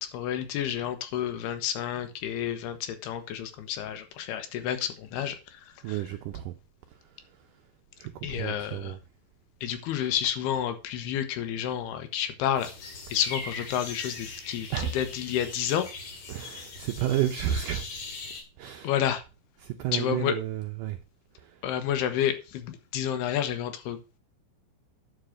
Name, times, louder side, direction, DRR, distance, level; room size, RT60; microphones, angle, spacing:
voice 1, 0.0-6.0 8.2-9.0 9.6-12.7 13.1-15.9 18.8-19.2 19.9-20.4 21.6-24.0, left 10 dB, 80° left, 3.1 m, -30 dB
voice 2, 5.8-6.5 8.0-9.0 14.7-14.9 16.3-17.8 18.6-18.9 19.6-21.0 21.4-21.6, right 11 dB, 80° right, 1.9 m, -31 dB
sound 1, 12.6-18.4, left 3 dB, 50° left, 3.2 m, -40 dB
11.0 x 5.1 x 6.4 m
omnidirectional pair, 4.7 m